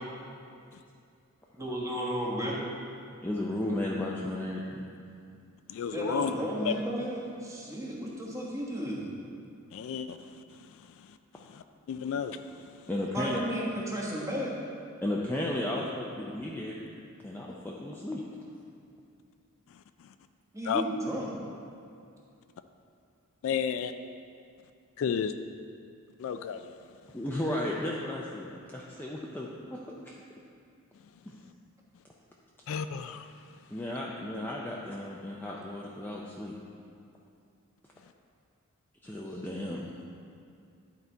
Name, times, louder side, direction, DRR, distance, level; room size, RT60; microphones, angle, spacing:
voice 1, 1.6-2.6 5.9-9.1 13.1-14.5 20.5-21.3, equal, 15° right, -4 dB, 1.3 m, -33 dB
voice 2, 3.2-4.9 12.9-13.4 15.0-17.0 17.2-18.2 27.1-29.8 30.0-30.1 31.3-31.4 33.7-36.5 39.0-39.9, left 1 dB, 10° left, -4 dB, 0.5 m, -34 dB
voice 3, 5.7-6.3 6.6-6.7 9.7-12.9 19.7-20.1 20.6-20.8 23.4-23.9 25.0-25.3 26.2-26.8 32.7-33.6, left 7 dB, 65° left, 9 dB, 0.3 m, -34 dB
11.0 x 4.1 x 4.5 m, 2.4 s
head